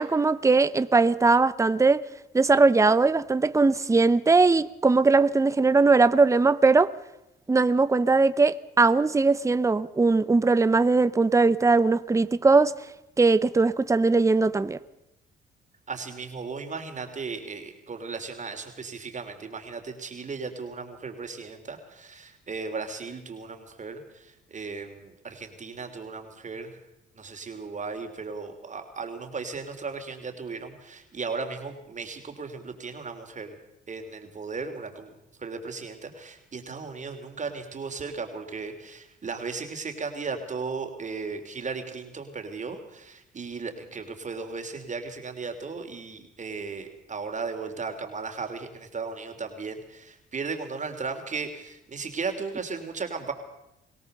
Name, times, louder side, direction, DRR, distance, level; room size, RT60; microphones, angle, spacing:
voice 1, 0.0-2.0 2.3-6.9 7.5-12.7 13.2-14.8, right 3 dB, 15° right, 0.8 m, -20 dB
voice 2, 15.9-26.8 27.2-33.5 33.9-35.1 35.4-53.3, right 4 dB, 40° right, 3.2 m, -36 dB
23.0 x 17.5 x 6.7 m
cardioid pair, 90°, 20 cm